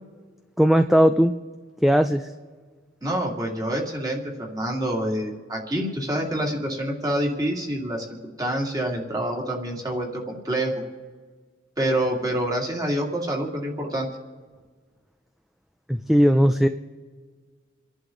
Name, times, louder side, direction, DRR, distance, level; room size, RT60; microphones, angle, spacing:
voice 1, 0.6-1.3 1.8-2.3 15.9-16.7, equal, ahead, 8 dB, 0.4 m, -18 dB
voice 2, 3.0-8.1 8.4-10.8 11.8-14.1, right 1 dB, 20° right, 0 dB, 2.4 m, -27 dB
29.0 x 11.0 x 3.8 m, 1.5 s
head